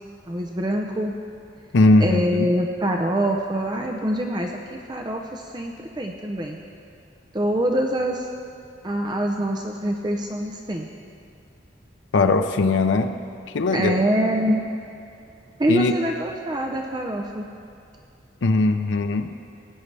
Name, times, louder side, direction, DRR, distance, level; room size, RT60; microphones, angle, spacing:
voice 1, 0.3-1.1 2.0-6.6 7.3-8.3 8.8-10.9 13.7-14.6 15.6-17.5, right 1 dB, 25° right, 2 dB, 0.5 m, -25 dB
voice 2, 1.7-2.5 12.1-13.1 13.5-14.0 15.7-15.9 18.4-19.3, left 3 dB, 85° left, 7 dB, 0.5 m, -19 dB
19.0 x 9.5 x 3.3 m, 2.4 s
head